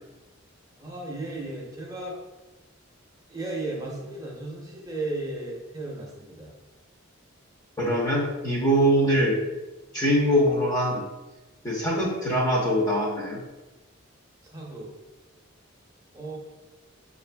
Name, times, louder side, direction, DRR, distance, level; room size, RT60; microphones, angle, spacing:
voice 1, 0.8-2.2 3.3-6.5 14.4-14.9 16.1-16.4, right 2 dB, 15° right, -3 dB, 0.7 m, -35 dB
voice 2, 7.8-9.4 9.9-11.0 11.6-13.4, equal, 15° left, -4 dB, 0.7 m, -23 dB
5.9 x 2.5 x 2.2 m, 1.1 s
head